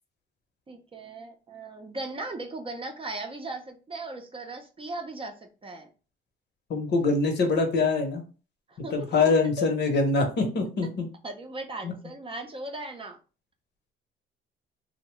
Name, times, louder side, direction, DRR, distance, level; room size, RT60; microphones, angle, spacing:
voice 1, 0.7-5.9 8.7-9.7 11.2-13.2, right 2 dB, 25° right, 4 dB, 0.5 m, -38 dB
voice 2, 6.7-8.2 8.9-11.1 11.8-11.9, left 3 dB, 60° left, 4 dB, 0.8 m, -24 dB
2.6 x 2.0 x 3.0 m, 0.35 s
cardioid pair, 90°, 20 cm